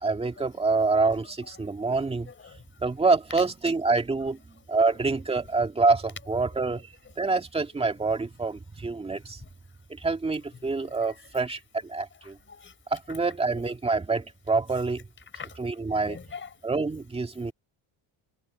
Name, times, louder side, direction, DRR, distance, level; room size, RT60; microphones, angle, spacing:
voice 1, 0.0-2.3 2.8-4.4 4.7-6.9 7.2-9.4 10.0-12.4 12.9-15.0 15.6-16.2 16.6-17.5, right 3 dB, 15° right, 1.9 m, -26 dB
voice 2, 1.6-2.0 2.3-2.6 7.2-7.3 10.7-11.1 12.2-12.7 15.3-15.6 15.9-16.5, left 6 dB, 25° left, 4.6 m, -45 dB
open air
cardioid pair, 165°, 45 cm